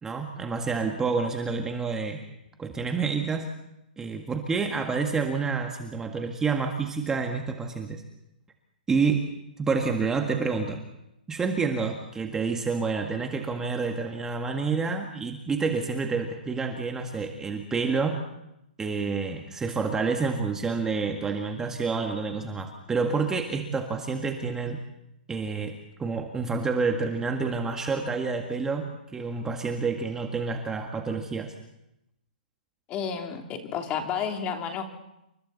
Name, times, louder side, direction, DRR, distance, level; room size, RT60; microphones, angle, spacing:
voice 1, 0.0-2.2 2.6-3.5 4.0-8.0 8.9-9.2 9.6-10.8 11.3-18.2 18.8-24.8 25.3-25.7 26.0-28.9 29.1-31.5, right 4 dB, 10° right, 3 dB, 1.7 m, -28 dB
voice 2, 32.9-34.8, left 7 dB, 25° left, 3 dB, 3.0 m, -31 dB
29.0 x 24.5 x 4.1 m, 0.85 s
hypercardioid pair, 145°, 5 cm